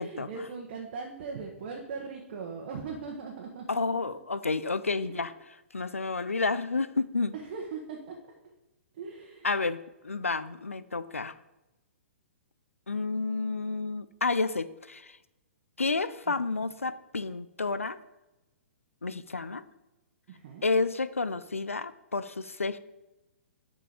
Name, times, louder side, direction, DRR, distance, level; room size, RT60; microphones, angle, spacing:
voice 1, 0.0-3.8 5.1-5.3 7.3-8.2 8.9-9.5 16.3-16.4 20.3-20.7, right 5 dB, 50° right, 0 dB, 1.3 m, -39 dB
voice 2, 3.7-5.3 5.7-7.3 9.4-9.8 10.0-11.3 12.9-15.2 15.8-18.0 19.0-19.6 20.6-22.8, left 3 dB, 90° left, 14 dB, 0.5 m, -30 dB
6.9 x 5.4 x 5.0 m, 1.0 s
figure-of-eight pair, 115°, 7 cm